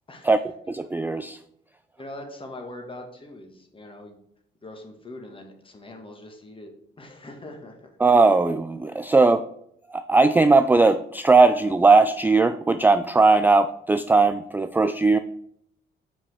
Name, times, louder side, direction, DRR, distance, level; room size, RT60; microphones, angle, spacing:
voice 1, 0.1-0.4 2.0-4.2 4.6-6.7 7.0-7.9 9.1-9.2, left 1 dB, 25° left, 3 dB, 1.9 m, -42 dB
voice 2, 0.7-1.4 8.0-9.4 9.9-15.2, right 3 dB, 10° right, 10 dB, 0.3 m, -18 dB
5.6 x 5.1 x 6.4 m, 0.70 s
cardioid pair, 90°, 20 cm